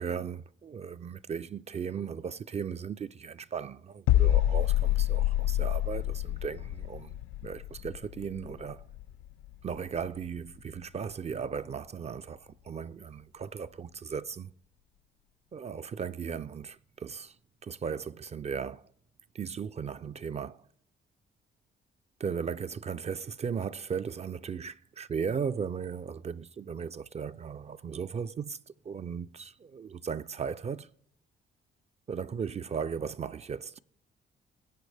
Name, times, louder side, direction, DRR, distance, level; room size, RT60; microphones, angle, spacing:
voice 1, 0.0-7.1 7.4-8.9 9.6-14.5 15.5-17.4 17.6-18.8 19.3-20.6 22.2-28.6 28.9-30.9 32.1-33.8, right 6 dB, 35° right, 0.4 m, -36 dB
sound 1, 4.1-9.8 10.0-10.3, left 14 dB, 90° left, 0.4 m, -28 dB
20.0 x 8.3 x 3.3 m
cardioid pair, 90°, 20 cm